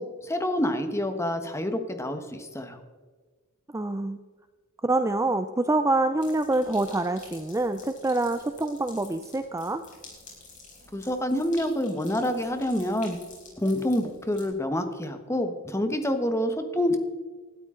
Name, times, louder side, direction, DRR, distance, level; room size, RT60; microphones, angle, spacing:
voice 1, 0.0-2.8 10.9-13.2 13.6-17.0, left 1 dB, 10° left, 7 dB, 1.2 m, -27 dB
voice 2, 3.7-4.2 4.8-9.8, right 2 dB, 15° right, 9 dB, 0.4 m, -26 dB
sound 1, 6.1-14.5, left 3 dB, 35° left, 5.0 m, -50 dB
20.0 x 13.0 x 3.8 m, 1.4 s
head